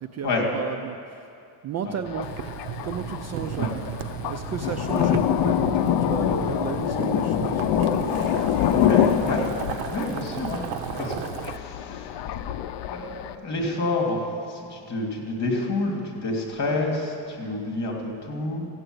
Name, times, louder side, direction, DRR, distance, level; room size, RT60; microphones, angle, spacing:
voice 1, 0.0-1.3 1.6-2.3 2.8-3.8 4.2-8.7 12.3-12.4, right 8 dB, 40° right, 7 dB, 0.4 m, -34 dB
Thunder, 2.1-13.4, left 10 dB, 65° left, 0.7 m, -26 dB
Boiling, 2.2-11.6, right 9 dB, 75° right, 0.8 m, -35 dB
voice 2, 8.6-9.5 9.9-10.6 11.0-12.2 12.7-18.7, left 2 dB, 35° left, 0 dB, 3.1 m, -29 dB
15.0 x 9.0 x 8.0 m, 2.5 s
cardioid pair, 155°, 46 cm